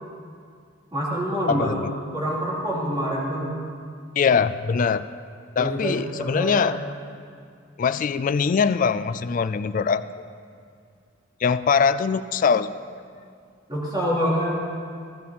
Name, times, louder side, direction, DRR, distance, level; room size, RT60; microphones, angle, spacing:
voice 1, 0.9-3.6 5.5-6.8 13.7-14.6, equal, 20° right, -7 dB, 3.2 m, -26 dB
voice 2, 1.5-1.9 4.2-5.0 5.6-6.8 7.8-10.0 11.4-12.7, left 6 dB, 40° left, 12 dB, 0.3 m, -22 dB
13.5 x 12.5 x 4.2 m, 2.3 s
head